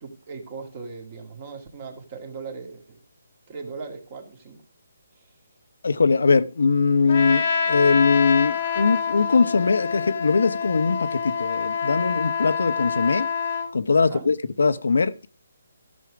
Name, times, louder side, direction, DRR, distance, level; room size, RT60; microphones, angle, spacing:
voice 1, 0.0-3.0 3.5-4.6 5.2-5.3 13.9-14.3, right 4 dB, 20° right, 2.0 m, -38 dB
voice 2, 5.8-13.3 13.7-15.3, left 4 dB, 70° left, 0.9 m, -21 dB
Trumpet, 7.1-13.7, left 6 dB, 30° left, 1.4 m, -26 dB
14.0 x 6.5 x 4.8 m
hypercardioid pair, 175°, 0 cm